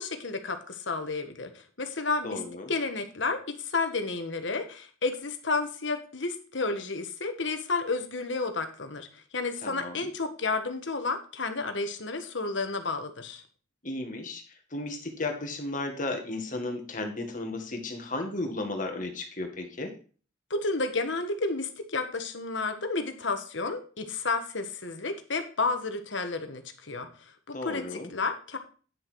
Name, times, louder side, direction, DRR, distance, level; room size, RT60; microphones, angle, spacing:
voice 1, 0.0-2.4 2.7-9.1 9.3-13.4 20.5-28.6, left 3 dB, 75° left, 7 dB, 1.5 m, -31 dB
voice 2, 2.2-2.7 9.6-10.1 13.8-14.4 14.7-19.9 27.5-28.1, left 2 dB, 45° left, 4 dB, 2.0 m, -34 dB
9.9 x 6.5 x 4.6 m, 0.39 s
head